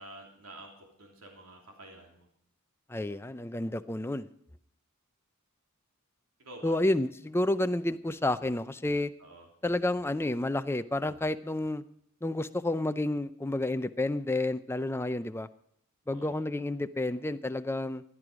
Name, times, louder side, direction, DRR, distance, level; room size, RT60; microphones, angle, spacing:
voice 1, 0.0-2.3 6.4-6.7 9.2-9.5 16.1-16.4, right 1 dB, 90° right, 1 dB, 3.0 m, -49 dB
voice 2, 2.9-4.3 6.6-9.1 9.6-11.8 12.2-15.5 16.1-18.0, left 1 dB, 10° left, 11 dB, 0.5 m, -30 dB
15.5 x 11.5 x 5.0 m, 0.69 s
head